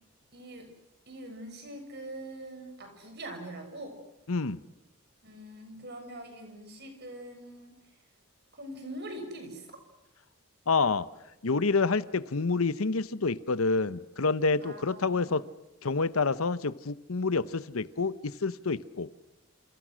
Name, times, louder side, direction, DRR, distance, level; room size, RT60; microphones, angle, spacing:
voice 1, 0.3-0.7 1.1-4.0 5.2-7.7 8.5-9.6 14.6-15.4, right 1 dB, 50° right, 5 dB, 6.3 m, -43 dB
voice 2, 4.3-4.6 10.7-11.1 11.4-15.4 15.8-19.1, left 4 dB, 75° left, 16 dB, 0.9 m, -28 dB
28.5 x 28.0 x 6.4 m, 0.93 s
head